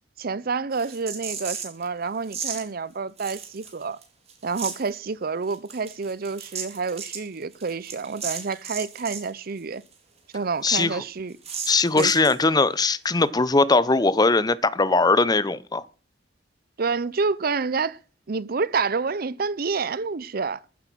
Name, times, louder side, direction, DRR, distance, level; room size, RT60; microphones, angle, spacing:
voice 1, 0.2-4.0 4.4-9.8 10.3-11.3 12.0-12.3 16.8-18.0 18.3-20.6, right 4 dB, 50° right, 0.6 m, -28 dB
sound 1, 0.7-1.8 2.3-2.6 3.2-4.0 4.3-4.9 5.5-9.3 9.6-9.7 9.9-10.0 10.3-10.4 10.8-10.9 11.4-12.4, right 6 dB, 35° right, 3.7 m, -35 dB
voice 2, 10.6-11.0 11.7-15.8, left 3 dB, 20° left, 0.7 m, -20 dB
14.5 x 8.1 x 6.1 m
head